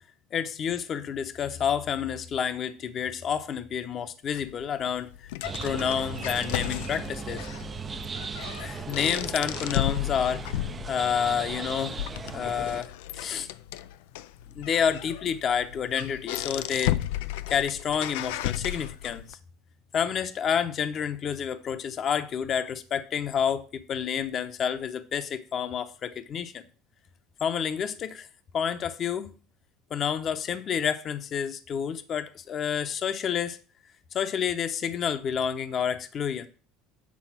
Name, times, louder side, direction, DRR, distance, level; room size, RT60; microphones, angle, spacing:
voice 1, 0.3-5.3 5.6-7.4 8.6-10.6 10.9-12.0 12.3-13.5 14.5-17.0 17.5-19.4 19.9-26.6 27.4-28.3 28.5-29.3 29.9-33.6 34.1-36.5, left 8 dB, 45° left, 0.8 m, -29 dB
sound 1, 4.3-19.3, left 14 dB, 80° left, 0.3 m, -34 dB
sound 2, 5.4-12.8, right 5 dB, 30° right, 0.5 m, -37 dB
8.5 x 3.9 x 6.0 m
supercardioid pair, 85°, 0 cm